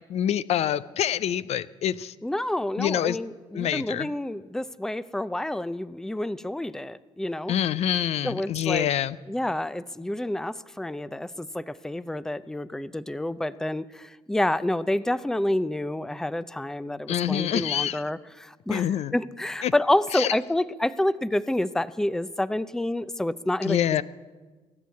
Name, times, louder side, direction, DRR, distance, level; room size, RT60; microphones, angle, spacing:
voice 1, 0.1-2.1 2.8-3.2 3.5-4.1 7.5-9.2 17.1-18.0 18.7-19.1 19.6-19.7 20.1-20.3 23.6-24.0, left 10 dB, 60° left, 16 dB, 0.5 m, -26 dB
voice 2, 2.2-7.5 8.2-8.9 9.3-18.8 19.1-23.8, left 1 dB, 5° left, 16 dB, 0.5 m, -28 dB
18.0 x 7.6 x 8.4 m, 1.3 s
supercardioid pair, 65°, 12 cm